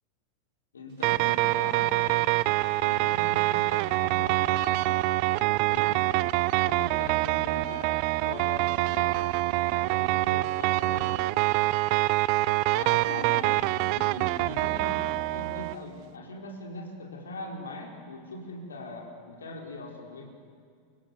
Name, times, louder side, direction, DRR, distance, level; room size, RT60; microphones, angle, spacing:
voice 1, 0.7-2.4 2.8-5.0 5.3-6.2 6.6-11.2 12.7-20.3, left 2 dB, 80° left, 1 dB, 4.7 m, -41 dB
sound 1, 1.0-15.7, right 20 dB, 50° right, 0.6 m, -25 dB
28.5 x 25.0 x 7.0 m, 2.2 s
figure-of-eight pair, 90°, 0 cm